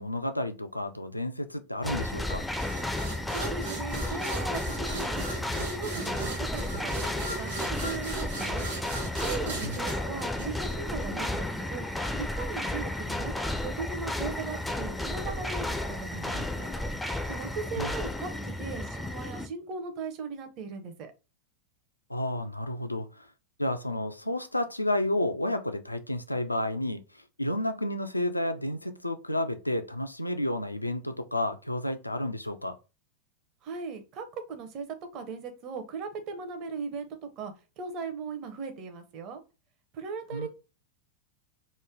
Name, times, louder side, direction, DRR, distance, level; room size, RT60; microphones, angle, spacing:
voice 1, 0.0-2.5 9.6-9.8 17.8-17.9 22.1-23.3 23.6-32.8 40.3-40.5, left 1 dB, 85° left, 0.4 m, -31 dB
sound 1, 1.8-19.5, left 1 dB, 5° left, 0.4 m, -33 dB
sound 2, 2.6-11.1, right 3 dB, 65° right, 1.3 m, -38 dB
voice 2, 3.3-5.2 5.5-8.7 9.2-11.8 12.2-13.3 13.6-16.7 17.3-21.1 33.6-34.9 35.1-37.1 37.4-39.4 39.9-40.5, right 5 dB, 40° right, 0.7 m, -38 dB
3.1 x 2.1 x 3.7 m
figure-of-eight pair, 90°, 0 cm